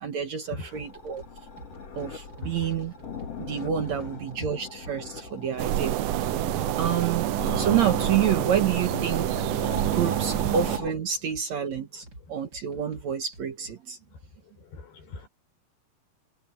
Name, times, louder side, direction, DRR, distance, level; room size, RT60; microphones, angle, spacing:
voice 1, 0.0-1.2 2.0-2.9 3.4-6.0 6.8-7.3 7.6-9.5 9.9-14.0, right 8 dB, 60° right, 2.2 m, -28 dB
sound 1, 0.7-10.9, left 5 dB, 45° left, 3.1 m, -39 dB
sound 2, 0.8-1.3 1.6-2.5 2.8-4.5 4.8-5.7 6.0-7.8 8.1-9.0 9.3-11.0 11.3-12.2 12.5-13.7, right 1 dB, 30° right, 5.7 m, -47 dB
sound 3, 5.6-10.8, right 14 dB, 75° right, 2.1 m, -27 dB
voice 2, 14.7-15.3, left 3 dB, 85° left, 8.6 m, -39 dB
omnidirectional pair, 4.5 m